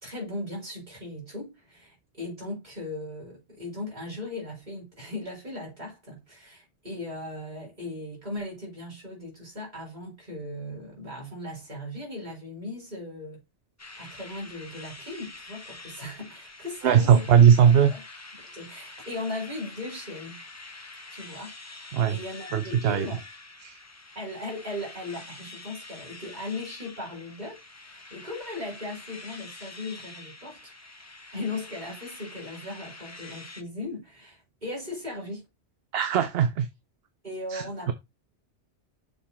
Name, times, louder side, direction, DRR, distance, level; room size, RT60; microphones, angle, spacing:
voice 1, 0.0-13.4 14.0-17.2 17.6-18.0 18.3-20.4 21.1-23.2 24.1-27.6 27.8-30.7 31.3-35.4 37.2-37.9, left 2 dB, 40° right, 4.3 m, -38 dB
sound 1, 13.8-33.6, left 3 dB, 20° left, 0.5 m, -46 dB
voice 2, 16.8-17.9 21.9-22.2 22.5-23.1 23.6-23.8 35.9-36.7 37.5-37.9, right 8 dB, 60° right, 0.8 m, -19 dB
7.0 x 3.7 x 4.2 m
omnidirectional pair, 1.2 m